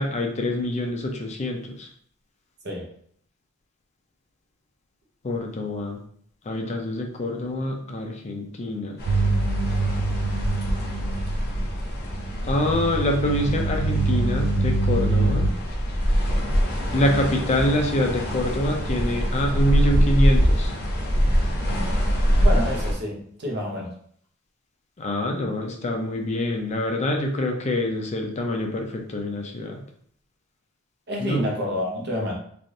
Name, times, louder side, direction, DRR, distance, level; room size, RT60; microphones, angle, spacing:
voice 1, 0.0-1.9 5.2-6.0 6.4-9.0 12.4-15.5 16.9-20.7 25.0-29.8 31.2-31.5, left 1 dB, 35° left, 2 dB, 0.4 m, -25 dB
sound 1, 9.0-22.9, equal, 50° left, 0.8 m, -24 dB
sound 2, 9.1-11.7 12.1-15.5, right 2 dB, 75° right, 0.3 m, -25 dB
voice 2, 22.4-23.9 31.1-32.4, left 1 dB, 55° right, -1 dB, 0.8 m, -28 dB
3.3 x 2.5 x 2.6 m, 0.62 s
head